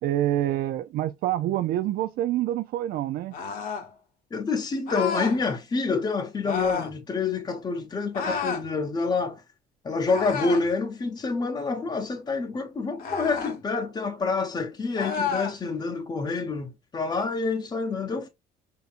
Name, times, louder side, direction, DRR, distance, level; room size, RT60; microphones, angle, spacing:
voice 1, 0.0-3.3, right 13 dB, 65° right, 0.4 m, -26 dB
sound 1, 3.3-3.9 4.9-5.4 6.4-6.9 8.1-8.7 10.1-10.7 13.0-13.6 15.0-15.6, left 5 dB, 60° left, 1.0 m, -31 dB
voice 2, 4.3-9.4 9.8-18.3, left 4 dB, 25° left, 0.7 m, -27 dB
5.7 x 2.7 x 2.5 m
cardioid pair, 110°, 17 cm